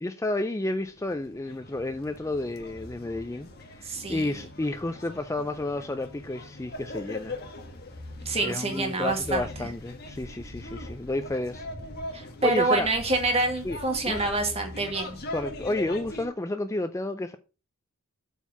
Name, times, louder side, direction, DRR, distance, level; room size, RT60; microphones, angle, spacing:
voice 1, 0.0-7.4 8.4-11.7 12.2-12.9 13.6-13.8 14.1-14.2 15.3-17.4, left 2 dB, 15° left, 0.4 m, -31 dB
sound 1, 0.8-16.3, left 1 dB, 45° left, 1.5 m, -41 dB
voice 2, 3.8-4.4 8.3-9.7 12.1-15.2, right 2 dB, 25° right, 2.0 m, -27 dB
8.1 x 4.6 x 5.5 m
head